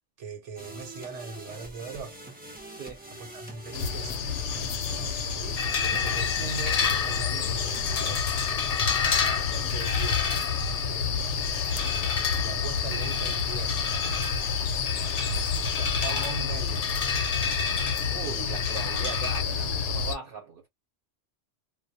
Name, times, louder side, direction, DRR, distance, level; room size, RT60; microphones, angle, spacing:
voice 1, 0.2-2.2 3.1-4.3 5.3-8.2 9.5-10.3 12.3-13.8 15.6-16.9, right 4 dB, 80° right, 1.1 m, -39 dB
sound 1, 0.6-8.1, right 1 dB, 10° right, 0.4 m, -44 dB
voice 2, 2.7-3.0 10.9-11.1 18.1-20.7, right 6 dB, 55° right, 0.8 m, -39 dB
sound 2, 3.7-20.2, left 6 dB, 85° left, 0.9 m, -29 dB
sound 3, 5.6-19.4, left 5 dB, 50° left, 0.5 m, -31 dB
2.3 x 2.1 x 2.6 m
omnidirectional pair, 1.2 m